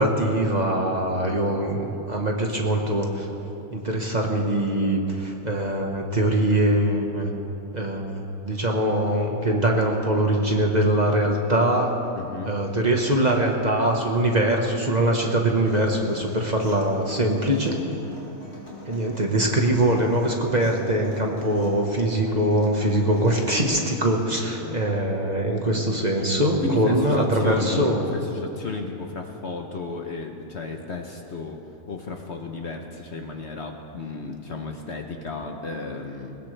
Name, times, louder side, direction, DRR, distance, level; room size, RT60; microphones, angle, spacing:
voice 1, 0.0-3.3 3.7-7.3 7.7-12.0 12.4-17.8 18.9-28.0, right 1 dB, 30° right, 1 dB, 1.4 m, -22 dB
voice 2, 12.1-12.5 16.1-16.2 24.6-24.8 26.6-31.6 31.9-36.4, left 3 dB, 50° left, 3 dB, 1.2 m, -33 dB
Human voice / Acoustic guitar, 15.7-23.6, left 1 dB, 35° left, 4.3 m, -42 dB
20.5 x 20.0 x 3.4 m, 2.8 s
omnidirectional pair, 1.6 m